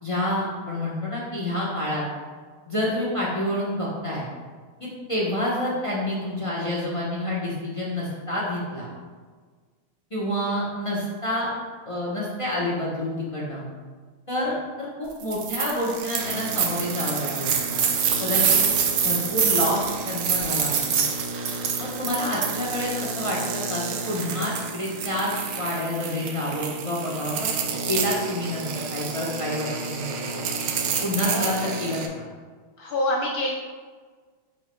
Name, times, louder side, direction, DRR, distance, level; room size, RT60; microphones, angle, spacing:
voice 1, 0.0-2.0 2.7-4.3 4.8-8.9 10.1-11.5 11.8-13.6 14.3-17.8 18.2-18.6 19.0-21.0 21.8-27.5 27.9-30.3 31.0-32.3, left 1 dB, 40° left, -5 dB, 0.4 m, -28 dB
sound 1, 15.2-15.7 16.1-22.8, right 7 dB, 70° right, 1.0 m, -25 dB
sound 2, 15.7-32.1, right 5 dB, 85° right, 1.5 m, -31 dB
voice 2, 31.2-31.7 32.8-33.5, left 1 dB, 75° left, -1 dB, 0.8 m, -26 dB
9.4 x 4.5 x 2.2 m, 1.5 s
omnidirectional pair, 2.2 m